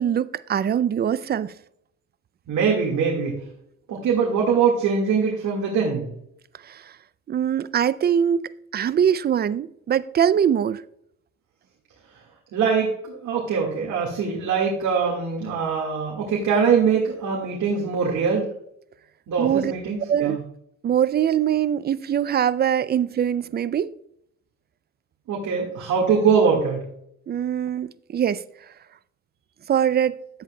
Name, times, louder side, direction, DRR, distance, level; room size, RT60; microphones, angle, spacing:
voice 1, 0.0-1.5 6.6-6.9 7.3-10.8 19.4-19.7 20.1-20.4 20.8-23.9 27.3-28.4 29.7-30.2, right 9 dB, 35° right, 0.4 m, -22 dB
voice 2, 2.5-3.3 3.9-6.1 12.5-18.5 19.3-20.4 25.3-26.8, right 6 dB, 75° right, 1.8 m, -22 dB
10.5 x 8.1 x 2.2 m
cardioid pair, 90°, 30 cm